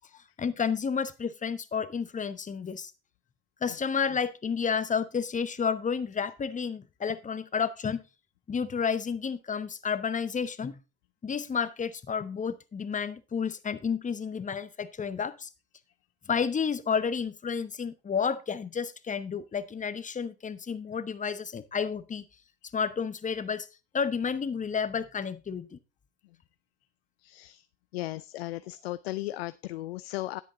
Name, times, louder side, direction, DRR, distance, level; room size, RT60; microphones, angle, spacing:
voice 1, 0.4-2.9 3.6-8.0 8.5-10.8 11.2-15.5 16.3-22.2 22.7-23.7 23.9-25.8, left 6 dB, 25° left, 14 dB, 1.1 m, -31 dB
voice 2, 27.2-27.7 27.9-30.4, left 17 dB, 90° left, 15 dB, 0.5 m, -36 dB
9.8 x 8.3 x 3.8 m, 0.29 s
hypercardioid pair, 80°, 30 cm